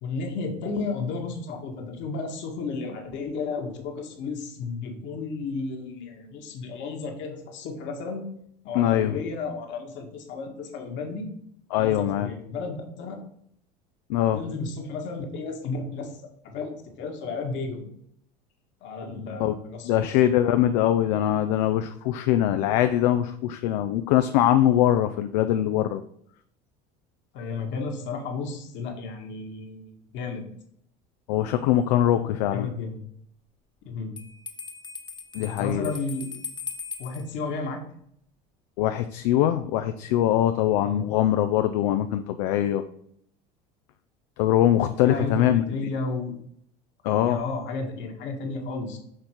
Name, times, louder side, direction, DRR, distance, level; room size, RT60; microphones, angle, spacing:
voice 1, 0.0-8.2 8.6-11.3 11.8-13.2 14.3-16.1 16.4-16.7 17.0-17.8 18.8-19.9 27.3-30.4 32.5-33.0 33.9-34.1 35.4-36.3 37.0-37.8 40.8-41.0 45.0-46.3 47.2-49.0, left 4 dB, 60° left, 2 dB, 1.6 m, -33 dB
voice 2, 8.7-9.2 11.7-12.3 14.1-14.4 19.4-19.6 19.8-26.0 31.3-32.7 35.3-35.9 38.8-42.8 44.4-45.9 47.0-47.4, left 12 dB, 80° left, 9 dB, 0.4 m, -22 dB
Bell, 34.2-37.3, left 5 dB, 20° left, 1.0 m, -39 dB
6.5 x 3.7 x 4.5 m, 0.68 s
supercardioid pair, 85°, 21 cm